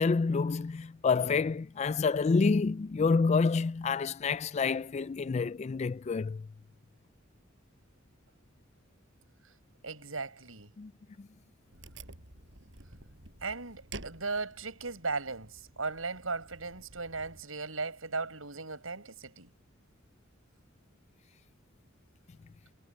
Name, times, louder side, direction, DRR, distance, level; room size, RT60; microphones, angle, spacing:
voice 1, 0.0-6.5 10.8-10.9 11.2-11.3, left 4 dB, 35° left, 0.3 m, -28 dB
voice 2, 9.8-10.7 13.4-19.5, right 3 dB, 85° right, 6.3 m, -37 dB
Wood, 11.7-17.4, right 2 dB, 65° right, 7.1 m, -50 dB
head